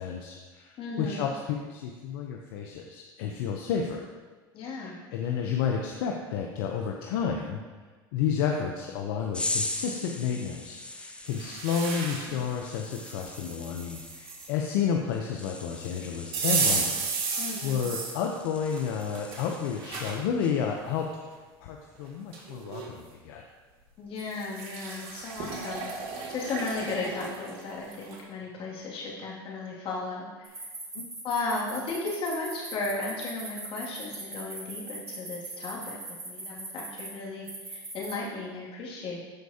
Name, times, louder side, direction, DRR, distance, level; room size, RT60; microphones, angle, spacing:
voice 1, 0.0-4.0 4.8-7.6 8.1-17.0 17.3-23.4 30.9-31.1, left 7 dB, 70° left, 2 dB, 0.7 m, -31 dB
voice 2, 0.8-1.2 4.5-5.0 17.4-17.9 24.0-25.9 26.3-30.7 31.2-36.0 36.2-39.2, left 3 dB, 50° left, -4 dB, 2.4 m, -35 dB
sound 1, 9.3-20.0 20.4-20.7, left 2 dB, 10° left, 0.6 m, -40 dB
sound 2, 11.3-12.4 12.9-14.5 16.3-18.2 18.8-20.2 20.8-20.9 22.0-22.1 22.3-22.9 24.2-28.2, right 4 dB, 55° right, 1.9 m, -33 dB
sound 3, 30.4-37.1 37.5-38.1, right 3 dB, 25° right, 2.5 m, -40 dB
13.0 x 4.6 x 2.8 m, 1.4 s
hypercardioid pair, 95°, 12 cm